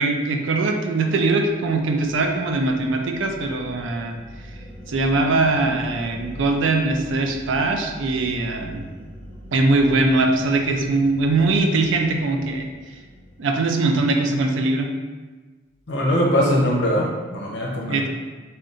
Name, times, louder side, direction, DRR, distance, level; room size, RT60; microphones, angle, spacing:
voice 1, 0.0-4.2 4.9-8.9 9.5-12.7 13.4-14.9 17.9-18.1, right 2 dB, 75° right, 3 dB, 0.4 m, -21 dB
sound 1, 1.3-14.5, equal, 5° left, 0.5 m, -42 dB
voice 2, 15.9-18.0, equal, 60° left, -3 dB, 0.7 m, -21 dB
3.7 x 2.2 x 3.8 m, 1.3 s
head